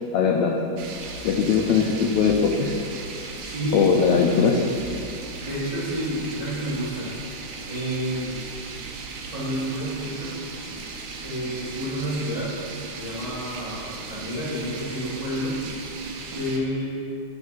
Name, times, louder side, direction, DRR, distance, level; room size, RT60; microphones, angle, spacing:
voice 1, 0.1-0.5 1.2-2.7 3.7-4.7, left 6 dB, 85° left, 1 dB, 1.6 m, -20 dB
sound 1, 0.8-16.6, right 3 dB, 75° right, 1.8 m, -37 dB
voice 2, 3.4-4.0 5.4-7.1 7.7-8.4 9.3-10.4 11.2-12.6 12.9-15.6 16.3-17.1, equal, 20° right, -10 dB, 1.0 m, -29 dB
8.6 x 4.1 x 5.5 m, 2.4 s
omnidirectional pair, 3.8 m